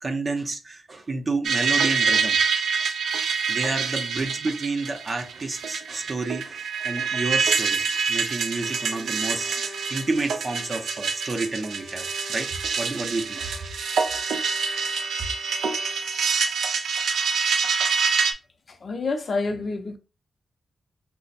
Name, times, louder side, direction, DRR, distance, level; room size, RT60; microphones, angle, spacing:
voice 1, 0.0-2.4 3.5-12.5 12.8-13.7, right 3 dB, 35° right, 0.6 m, -30 dB
sound 1, 1.4-18.3, right 5 dB, 85° right, 0.4 m, -26 dB
Bowed string instrument, 8.3-16.3, left 2 dB, 5° right, 0.8 m, -45 dB
voice 2, 18.7-20.0, left 3 dB, 50° left, 0.5 m, -28 dB
3.2 x 2.0 x 4.0 m
wide cardioid pair, 120°, 0 cm